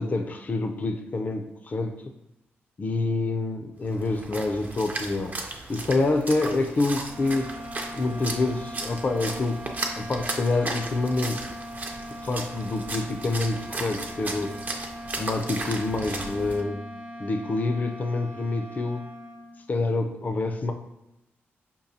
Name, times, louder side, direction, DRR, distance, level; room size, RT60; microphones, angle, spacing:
voice 1, 0.0-2.0 2.8-5.4 5.7-7.6 7.9-9.7 10.0-11.5 12.2-14.6 15.2-16.9 17.2-19.0 19.7-20.7, left 2 dB, 35° left, 6 dB, 0.4 m, -27 dB
Splash splatter, 3.9-16.6, right 2 dB, 35° right, 0.5 m, -36 dB
sound 1, 7.0-19.7, equal, 75° right, 0.9 m, -40 dB
5.2 x 2.3 x 2.7 m, 0.91 s
cardioid pair, 80°, 5 cm